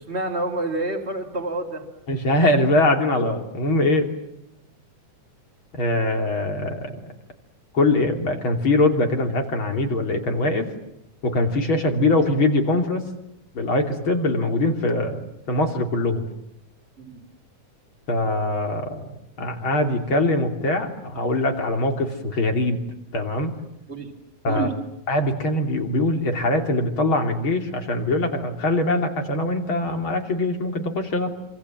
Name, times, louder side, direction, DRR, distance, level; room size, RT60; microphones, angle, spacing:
voice 1, 0.1-1.8 17.0-17.2 23.9-24.1 24.5-24.7, right 2 dB, 20° right, -3 dB, 3.4 m, -28 dB
voice 2, 2.1-4.1 5.7-6.9 7.7-10.7 11.2-13.1 13.6-16.3 18.1-22.8 23.1-23.5 24.4-24.7 25.1-31.3, left 2 dB, 40° left, 5 dB, 3.5 m, -22 dB
27.5 x 26.0 x 7.4 m, 0.85 s
omnidirectional pair, 3.6 m